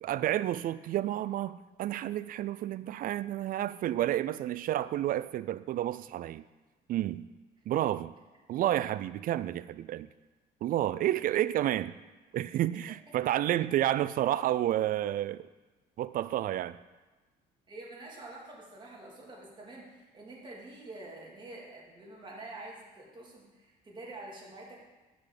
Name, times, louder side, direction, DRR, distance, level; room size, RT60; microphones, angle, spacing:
voice 1, 0.0-6.4 6.9-7.3 7.7-8.1 8.5-10.1 10.6-11.9 12.3-15.5 16.0-16.8, right 13 dB, 55° right, 0.4 m, -30 dB
voice 2, 17.7-24.8, right 2 dB, 30° right, 2.9 m, -47 dB
10.5 x 6.1 x 5.0 m
cardioid pair, 110°, 17 cm